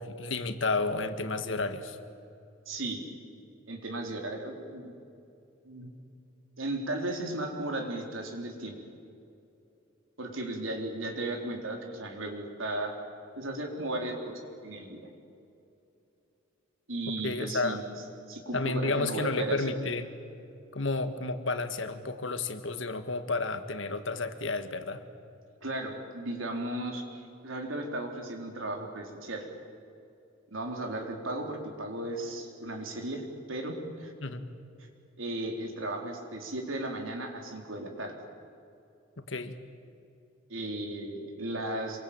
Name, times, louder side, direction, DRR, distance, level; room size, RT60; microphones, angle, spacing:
voice 1, 0.0-2.0 17.2-17.8 18.5-20.1 20.7-25.0 34.2-34.4 39.2-39.6, left 3 dB, 65° left, 9 dB, 1.8 m, -31 dB
voice 2, 2.7-3.0 3.7-4.9 5.6-5.9 6.6-8.8 10.2-12.9 13.4-15.1 16.9-17.8 18.3-19.7 25.6-29.5 30.5-34.1 35.2-38.2 40.5-42.0, right 1 dB, 80° right, 2 dB, 4.3 m, -35 dB
27.0 x 23.0 x 9.0 m, 2.7 s
head